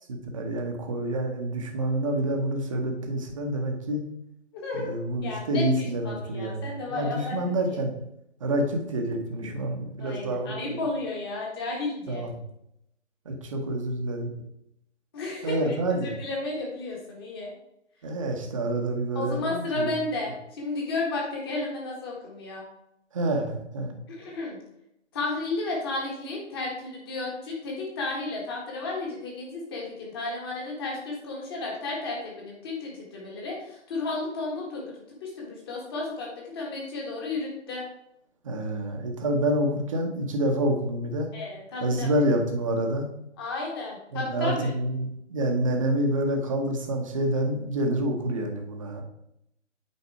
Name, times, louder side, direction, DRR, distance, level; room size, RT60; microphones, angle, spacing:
voice 1, 0.1-4.0 4.7-7.9 8.4-10.9 12.1-12.4 13.2-14.3 15.4-16.1 18.0-19.9 23.1-23.9 38.4-41.3 41.8-43.1 44.1-49.0, right 1 dB, 25° right, 3 dB, 1.0 m, -28 dB
voice 2, 4.5-4.9 5.2-7.8 10.0-12.2 15.1-17.5 19.1-22.6 24.1-24.6 25.1-34.8 35.2-37.8 41.3-42.1 43.4-44.7, left 3 dB, 20° left, -2 dB, 1.5 m, -33 dB
8.3 x 4.1 x 4.7 m, 0.80 s
figure-of-eight pair, 150°, 37 cm